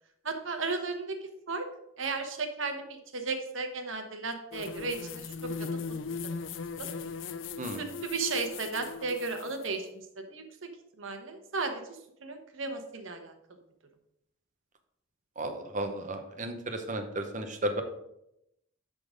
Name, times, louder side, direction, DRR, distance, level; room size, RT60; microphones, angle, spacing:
voice 1, 0.2-1.2 1.5-1.7 2.0-5.7 6.8-6.9 7.6-9.9 10.2-10.4 11.0-13.3, right 4 dB, 70° right, 6 dB, 1.1 m, -35 dB
sound 1, 4.5-9.7, left 5 dB, 65° left, 0.4 m, -38 dB
voice 2, 15.4-17.8, right 1 dB, 40° right, 6 dB, 0.8 m, -34 dB
9.9 x 3.9 x 5.0 m, 0.82 s
head